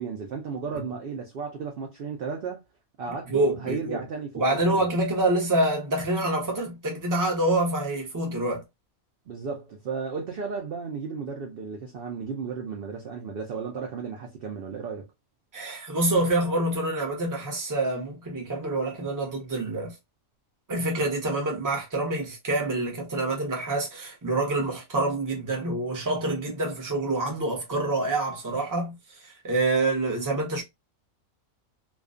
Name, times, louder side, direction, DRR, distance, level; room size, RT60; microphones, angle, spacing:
voice 1, 0.0-2.6 3.0-4.9 9.3-15.1, right 5 dB, 70° right, 0.5 m, -34 dB
voice 2, 3.3-4.0 4.3-8.6 15.5-19.9 20.7-28.9 29.2-30.6, right 2 dB, 20° right, 0.5 m, -26 dB
2.4 x 2.2 x 2.3 m
omnidirectional pair, 1.5 m